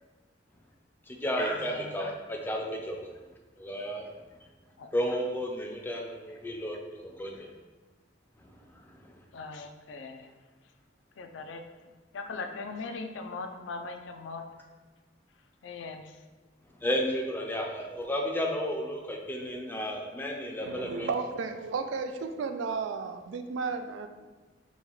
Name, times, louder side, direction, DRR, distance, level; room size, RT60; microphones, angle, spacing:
voice 1, 1.1-3.0 3.6-4.1 4.9-6.8 7.0-7.5 8.7-9.1 16.8-21.1, equal, 10° left, 0 dB, 0.4 m, -32 dB
voice 2, 1.6-2.0 2.3-2.4 4.8-4.9 9.3-10.3 11.2-11.7 12.1-14.5 15.6-16.2, left 3 dB, 85° left, 6 dB, 0.4 m, -40 dB
voice 3, 20.6-24.1, right 4 dB, 85° right, 8 dB, 0.3 m, -33 dB
5.3 x 2.3 x 3.0 m, 1.3 s
head